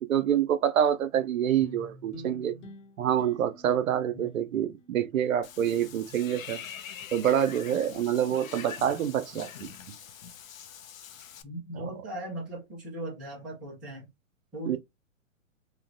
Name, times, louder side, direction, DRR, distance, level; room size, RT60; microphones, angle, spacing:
voice 1, 0.0-2.6 3.0-6.6 7.1-9.7 11.8-11.9 14.7-14.8, right 9 dB, 80° right, 0.6 m, -27 dB
sound 1, 1.6-6.2, equal, 60° left, 0.9 m, -49 dB
Water / Bathtub (filling or washing), 5.4-11.4, left 8 dB, 75° left, 0.6 m, -44 dB
voice 2, 11.4-14.1 14.5-14.8, right 1 dB, ahead, 0.3 m, -38 dB
3.1 x 2.1 x 2.4 m
hypercardioid pair, 130°, 40 cm